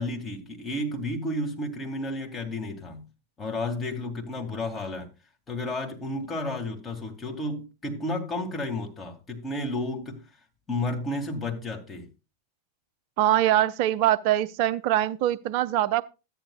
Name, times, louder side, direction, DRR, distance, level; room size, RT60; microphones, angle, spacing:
voice 1, 0.0-3.0 3.4-5.1 5.5-10.2 10.7-12.1, left 1 dB, 15° left, 2.4 m, -32 dB
voice 2, 13.2-16.0, right 13 dB, 45° right, 0.6 m, -23 dB
13.5 x 9.5 x 2.4 m
figure-of-eight pair, 90°, 0 cm